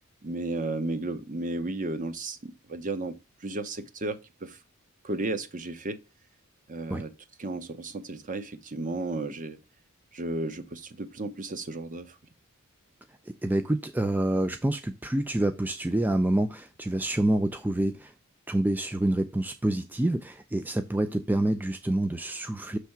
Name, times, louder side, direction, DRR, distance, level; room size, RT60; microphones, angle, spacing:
voice 1, 0.2-3.1 3.4-4.6 5.0-6.0 6.7-7.1 7.4-9.6 10.1-12.1, right 2 dB, 40° right, 0.8 m, -33 dB
voice 2, 13.3-18.1 18.5-22.8, right 1 dB, 10° right, 0.4 m, -27 dB
6.4 x 3.4 x 5.8 m
head